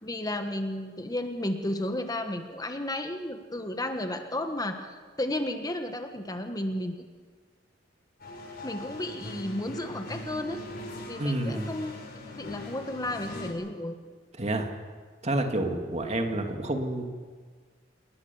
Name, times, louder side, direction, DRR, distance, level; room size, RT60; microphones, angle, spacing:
voice 1, 0.0-7.0 8.6-10.6 11.1-12.0 12.3-14.0, left 1 dB, 20° left, 6 dB, 1.4 m, -33 dB
sound 1, 8.2-13.5, left 1 dB, 55° left, 5.9 m, -41 dB
voice 2, 11.2-11.7 14.4-14.7 15.2-17.1, right 1 dB, 35° right, 4 dB, 2.5 m, -29 dB
28.5 x 20.5 x 7.2 m, 1.5 s
head